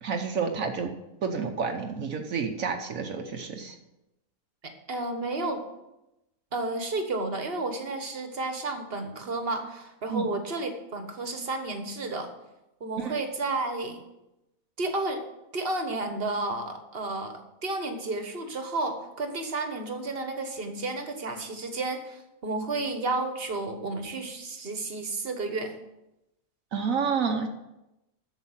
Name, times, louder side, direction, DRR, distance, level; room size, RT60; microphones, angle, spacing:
voice 1, 0.0-0.9 1.2-3.8 10.1-10.3 13.0-13.1 26.7-27.5, right 5 dB, 70° right, 4 dB, 1.3 m, -29 dB
voice 2, 4.6-5.6 6.5-12.3 12.8-14.0 14.8-15.2 15.5-25.7, right 2 dB, 45° right, 6 dB, 1.4 m, -32 dB
8.2 x 7.2 x 7.3 m, 0.92 s
omnidirectional pair, 1.5 m